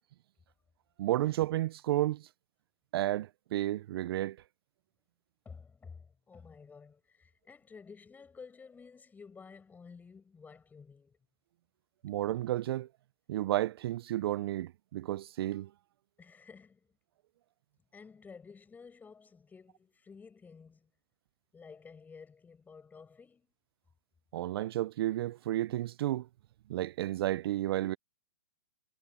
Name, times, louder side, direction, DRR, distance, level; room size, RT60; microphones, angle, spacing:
voice 1, 1.0-2.3 2.9-4.4 12.0-12.9 13.3-15.7 24.3-26.3 26.7-28.0, right 14 dB, 50° right, 0.5 m, -32 dB
voice 2, 5.4-11.2 16.2-16.9 17.9-20.9 21.5-23.5, left 5 dB, 10° left, 6.5 m, -52 dB
hypercardioid pair, 135°, 16 cm